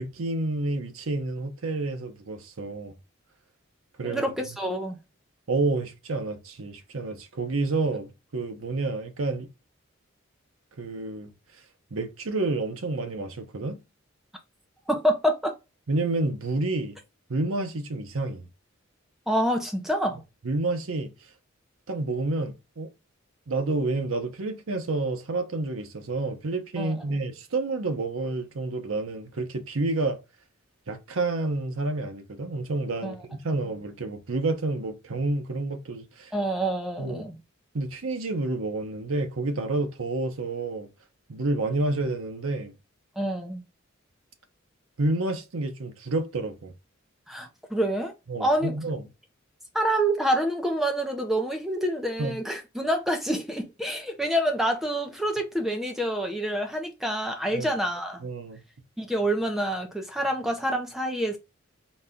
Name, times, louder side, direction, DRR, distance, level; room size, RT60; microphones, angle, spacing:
voice 1, 0.0-2.9 4.0-4.2 5.5-9.5 10.8-11.3 11.9-13.8 15.9-17.0 17.3-18.4 20.4-21.1 21.9-22.9 23.5-30.2 30.9-36.3 37.0-37.3 37.7-40.9 41.3-42.7 45.0-46.7 48.3-49.0 52.2-52.4 57.5-57.7 58.2-58.6, right 2 dB, 80° right, 0.7 m, -29 dB
voice 2, 4.0-5.0 14.9-15.5 19.3-20.2 26.8-27.2 33.0-33.2 36.3-37.4 43.2-43.6 47.3-48.1 48.4-48.7 49.7-58.3 59.0-61.4, right 1 dB, ahead, 0.5 m, -27 dB
4.1 x 2.2 x 3.6 m
head